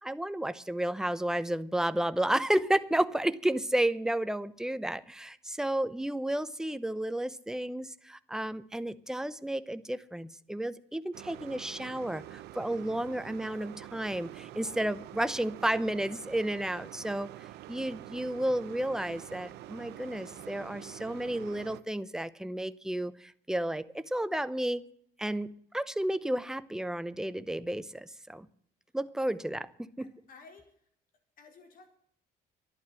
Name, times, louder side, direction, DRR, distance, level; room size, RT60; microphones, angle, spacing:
voice 1, 0.0-17.3 17.7-24.9 25.2-28.5 28.9-30.1, right 1 dB, 5° right, 13 dB, 0.7 m, -32 dB
sound 1, 11.1-21.8, right 14 dB, 80° right, 0.8 m, -46 dB
voice 2, 30.0-30.9 31.4-31.9, left 4 dB, 55° left, 4 dB, 4.5 m, -55 dB
11.5 x 11.5 x 7.6 m, 0.64 s
cardioid pair, 110°, 17 cm